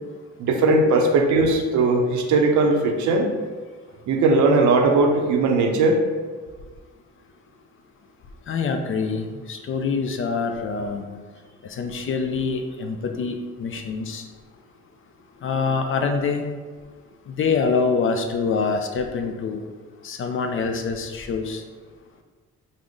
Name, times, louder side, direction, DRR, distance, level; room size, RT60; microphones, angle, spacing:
voice 1, 0.4-3.3 4.1-6.0, right 3 dB, 70° right, 3 dB, 0.6 m, -19 dB
voice 2, 8.5-11.0 11.7-14.3 15.4-16.5 17.3-19.6 20.0-21.6, left 5 dB, 45° left, 5 dB, 0.4 m, -25 dB
3.6 x 2.0 x 3.6 m, 1.4 s
cardioid pair, 90°, 30 cm